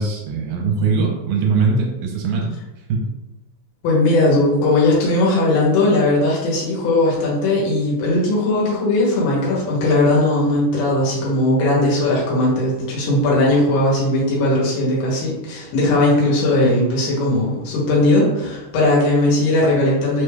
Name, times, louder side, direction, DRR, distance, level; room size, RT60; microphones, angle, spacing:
voice 1, 0.0-2.5 2.9-3.1, right 4 dB, 80° right, 0 dB, 2.2 m, -21 dB
voice 2, 3.8-20.2, left 2 dB, 85° left, -4 dB, 2.7 m, -18 dB
5.5 x 2.3 x 3.3 m, 0.96 s
omnidirectional pair, 3.9 m